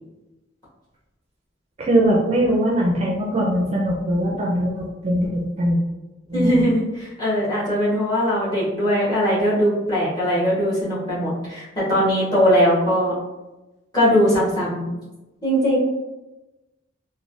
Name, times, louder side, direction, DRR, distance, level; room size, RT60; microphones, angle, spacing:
voice 1, 1.8-5.8 6.3-6.7, right 1 dB, 35° right, -2 dB, 0.4 m, -21 dB
voice 2, 6.3-13.1 13.9-14.9 15.4-15.8, equal, 20° left, -9 dB, 1.2 m, -20 dB
3.2 x 2.1 x 2.5 m, 1.1 s
head